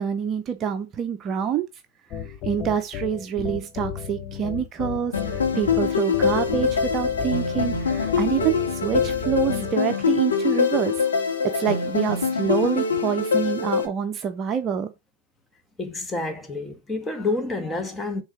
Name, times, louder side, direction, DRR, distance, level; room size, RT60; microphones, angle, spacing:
voice 1, 0.0-1.7 2.4-11.0 11.4-14.9, right 8 dB, 30° right, 0.7 m, -26 dB
sound 1, 2.1-9.8, left 8 dB, 40° left, 0.9 m, -33 dB
sound 2, 5.1-13.8, left 5 dB, 80° left, 2.5 m, -24 dB
voice 2, 15.8-18.2, left 3 dB, 10° left, 1.7 m, -28 dB
6.4 x 3.8 x 5.9 m
hypercardioid pair, 100°, 0 cm